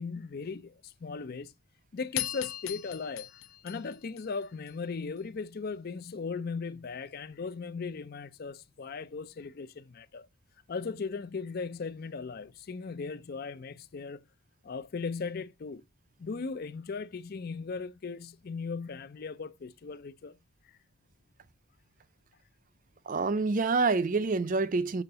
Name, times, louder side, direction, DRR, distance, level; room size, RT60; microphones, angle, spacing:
voice 1, 0.0-1.5 1.9-3.3 3.6-10.3 10.7-14.2 14.6-15.8 16.2-20.4, left 4 dB, 45° left, 0.4 m, -38 dB
sound 1, 2.2-4.7, left 13 dB, 70° left, 0.8 m, -38 dB
voice 2, 23.1-25.0, right 3 dB, 40° right, 0.4 m, -27 dB
7.0 x 3.8 x 5.7 m
head